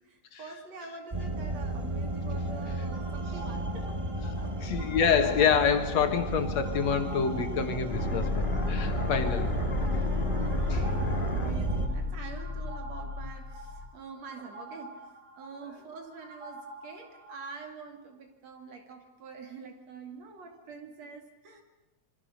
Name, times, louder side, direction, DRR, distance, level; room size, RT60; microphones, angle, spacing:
voice 1, 0.0-4.0 4.4-4.6 10.3-15.1 15.4-21.6, right 5 dB, 65° right, 5 dB, 3.6 m, -46 dB
sound 1, 1.1-11.9, right 2 dB, 35° right, 0.4 m, -33 dB
sound 2, 2.9-17.7, right 2 dB, 90° right, 7.0 m, -47 dB
voice 2, 4.6-9.5 10.7-10.8, left 7 dB, 65° left, 7 dB, 2.7 m, -27 dB
sound 3, 7.9-13.9, left 2 dB, 20° left, 2.0 m, -31 dB
27.0 x 23.5 x 6.6 m, 0.94 s
omnidirectional pair, 3.3 m